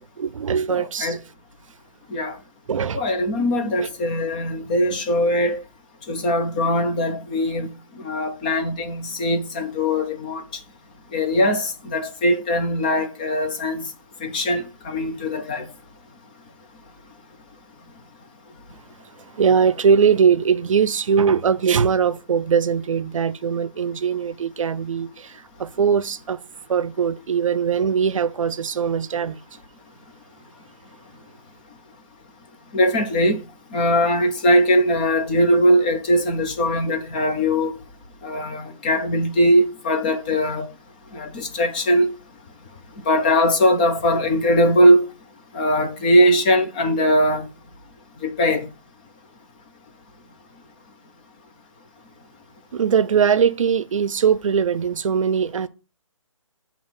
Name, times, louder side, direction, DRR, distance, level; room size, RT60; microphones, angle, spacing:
voice 1, 0.2-1.2 2.7-3.0 3.4-3.5 3.8-3.9 19.4-26.4 26.7-29.4 52.7-55.7, right 7 dB, 70° right, 0.6 m, -21 dB
voice 2, 0.7-1.2 2.1-2.4 2.9-5.6 6.1-7.7 8.0-10.4 11.1-13.9 14.2-15.7 32.7-33.4 33.7-37.7 38.2-40.7 41.1-42.1 43.1-45.0 45.5-47.5 48.2-48.6, equal, 15° left, 0.4 m, -20 dB
6.9 x 3.0 x 5.4 m
hypercardioid pair, 165°, 17 cm